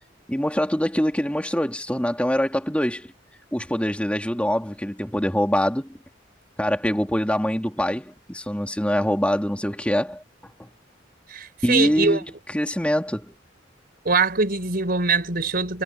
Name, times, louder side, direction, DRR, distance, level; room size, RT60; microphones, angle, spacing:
voice 1, 0.3-3.1 3.5-5.9 6.6-10.2 10.6-10.7 11.6-12.2 12.5-13.3, equal, 5° left, 2.8 m, -24 dB
voice 2, 11.3-12.2 14.0-15.8, right 4 dB, 55° right, 4.3 m, -23 dB
head